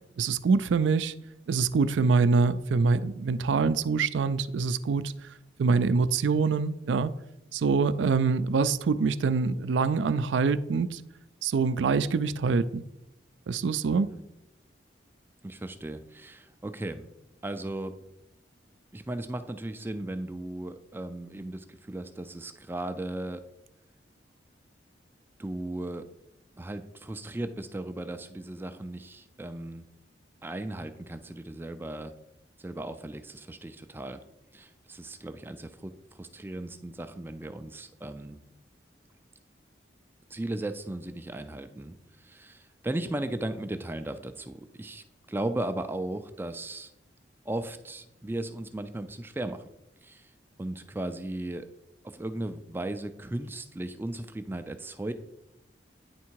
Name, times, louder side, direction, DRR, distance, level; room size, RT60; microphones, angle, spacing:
voice 1, 0.2-1.1 1.5-5.1 5.6-7.1 7.5-11.0 11.4-12.8 13.5-14.1, right 4 dB, 85° right, 0.4 m, -25 dB
voice 2, 13.9-14.2 15.4-17.1 17.4-17.9 18.9-23.4 25.4-26.0 26.6-29.8 30.4-32.1 32.6-34.2 34.5-35.9 36.2-38.4 40.3-46.9 47.4-49.7 50.0-50.3 50.6-51.7 52.0-55.1, right 1 dB, 10° right, 0.3 m, -36 dB
9.4 x 3.6 x 4.5 m
head